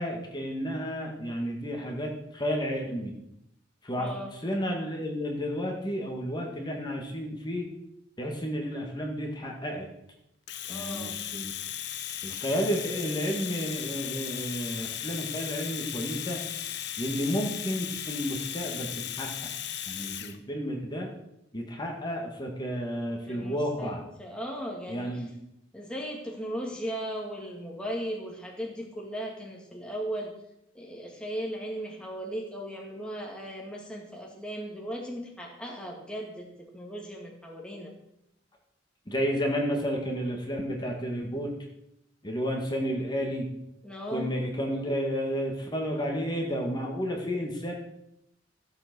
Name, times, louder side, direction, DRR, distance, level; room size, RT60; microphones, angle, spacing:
voice 1, 0.0-3.1 3.8-4.1 4.4-7.7 8.2-9.9 10.7-11.5 12.2-16.4 17.0-18.9 19.2-19.5 19.9-21.1 21.5-24.0 24.9-25.3 39.1-41.5 42.2-43.5 44.1-47.7, equal, 25° left, 1 dB, 2.1 m, -31 dB
voice 2, 3.9-4.3 10.7-11.2 23.3-25.2 25.7-30.3 30.7-37.9 43.8-44.3, equal, 5° left, -1 dB, 2.1 m, -37 dB
Domestic sounds home sounds, 10.5-20.4, left 10 dB, 65° left, 1.0 m, -36 dB
15.0 x 8.0 x 6.2 m, 0.81 s
head